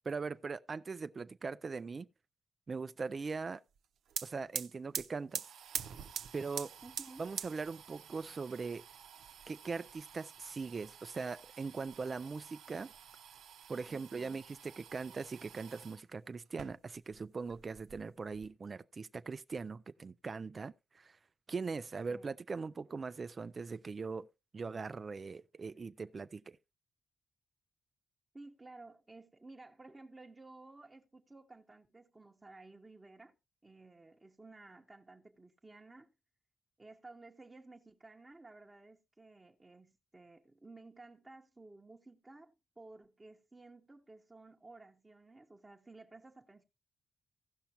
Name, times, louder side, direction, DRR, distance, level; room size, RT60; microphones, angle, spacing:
voice 1, 0.1-2.1 2.7-3.6 4.2-5.4 6.3-6.7 7.2-8.9 9.5-12.9 13.7-21.2 21.5-24.3 24.5-26.6, right 4 dB, 35° right, 0.4 m, -41 dB
sound 1, 3.8-3.9 4.1-16.0 16.5-17.2 17.5-18.5, right 9 dB, 85° right, 0.7 m, -46 dB
voice 2, 6.8-7.2 13.9-14.4 22.1-22.3 28.3-33.3 33.6-36.1 36.8-46.6, right 2 dB, 20° right, 0.9 m, -55 dB
16.5 x 5.8 x 2.9 m
cardioid pair, 115°, 0 cm